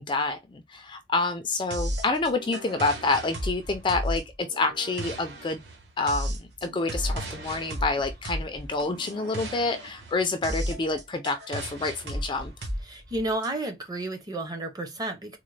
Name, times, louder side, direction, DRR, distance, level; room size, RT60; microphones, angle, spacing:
voice 1, 0.0-5.6 6.0-12.5, left 3 dB, 25° left, 0.3 m, -28 dB
sound 1, 1.7-13.5, equal, 55° right, 1.1 m, -34 dB
voice 2, 12.9-15.4, right 2 dB, 20° right, 0.6 m, -31 dB
3.8 x 2.0 x 3.1 m
head